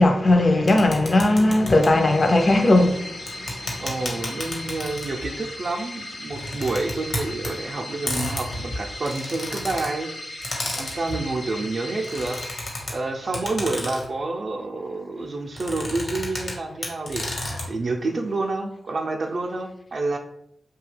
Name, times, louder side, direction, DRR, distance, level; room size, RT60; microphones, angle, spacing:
voice 1, 0.0-3.1, left 2 dB, 45° left, 0.5 m, -17 dB
sound 1, 0.7-1.9 3.3-5.3 6.3-7.5 8.1-9.9 10.4-11.2 12.0-12.9 13.3-14.1 15.5-16.5 16.8-17.6, left 1 dB, 65° left, 1.1 m, -31 dB
sound 2, 1.4-13.4, left 2 dB, 90° left, 0.7 m, -38 dB
voice 2, 3.8-12.4 12.9-20.2, right 3 dB, 60° right, 0.4 m, -29 dB
2.8 x 2.2 x 3.2 m
cardioid pair, 60°, 0 cm